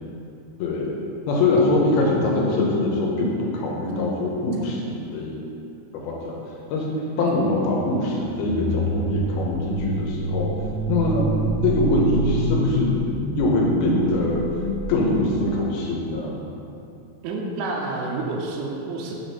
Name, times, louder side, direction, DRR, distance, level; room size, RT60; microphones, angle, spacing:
voice 1, 0.6-1.0 1.3-5.4 5.9-6.3 6.7-10.5 10.9-11.3 11.6-13.0 13.4-14.4 14.9-16.4, left 2 dB, 80° left, -2 dB, 2.6 m, -23 dB
sound 1, 8.4-15.7, right 1 dB, 60° left, 1.5 m, -27 dB
voice 2, 17.2-19.1, right 3 dB, 90° right, 0 dB, 2.6 m, -29 dB
6.8 x 3.4 x 4.1 m, 2.6 s
omnidirectional pair, 4.4 m